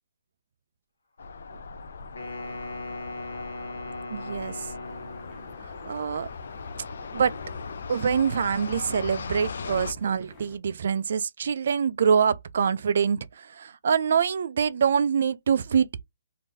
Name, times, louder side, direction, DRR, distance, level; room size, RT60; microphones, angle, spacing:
sound 1, 1.2-9.9, left 5 dB, 65° left, 0.4 m, -39 dB
Wind instrument woodwind instrument, 2.1-5.6, left 2 dB, 85° left, 1.1 m, -38 dB
voice 1, 4.1-4.5 5.9-6.3 7.1-7.3 7.9-13.3 13.6-16.0, right 7 dB, 55° right, 0.3 m, -25 dB
sound 2, 4.8-10.6, left 2 dB, 15° left, 0.8 m, -50 dB
3.7 x 2.6 x 2.6 m
hypercardioid pair, 170°, 0 cm